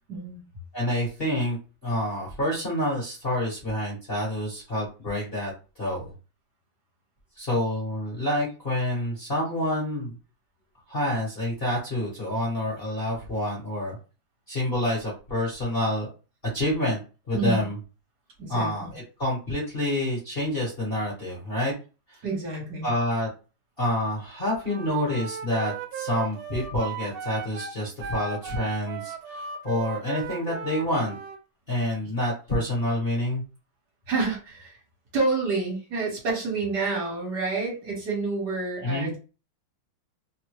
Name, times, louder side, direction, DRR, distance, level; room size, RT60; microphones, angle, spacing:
voice 1, 0.1-0.4 17.3-17.6 18.4-18.9 22.2-22.9 34.1-34.8 35.1-39.2, right 3 dB, 55° right, -2 dB, 1.6 m, -28 dB
voice 2, 0.7-1.6 1.8-5.5 5.8-6.1 7.4-10.1 10.9-14.0 14.5-16.1 16.5-17.0 17.3-17.7 18.5-21.7 22.1-22.2 22.8-23.3 23.8-31.2 31.7-33.4 38.8-39.1, left 1 dB, 35° left, -5 dB, 1.1 m, -28 dB
Wind instrument woodwind instrument, 24.6-31.4, right 7 dB, 80° right, 1.4 m, -36 dB
3.5 x 2.1 x 3.0 m, 0.32 s
omnidirectional pair, 2.3 m